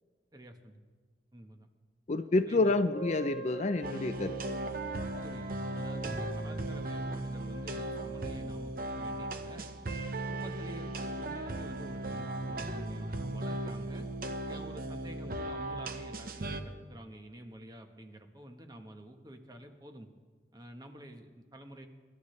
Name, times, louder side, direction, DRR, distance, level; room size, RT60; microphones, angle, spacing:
voice 1, 0.3-0.8 1.3-1.7 2.5-2.8 5.2-5.5 5.7-9.7 10.3-14.1 14.5-20.1 20.5-21.9, right 1 dB, 25° right, 5 dB, 1.1 m, -49 dB
voice 2, 2.1-4.4, left 2 dB, 40° left, 10 dB, 0.5 m, -28 dB
Wind instrument woodwind instrument, 2.9-8.5, right 3 dB, 75° right, 5.4 m, -45 dB
sound 1, 3.8-16.6, right 1 dB, 55° right, 0.9 m, -37 dB
24.0 x 12.0 x 3.2 m, 1.4 s
head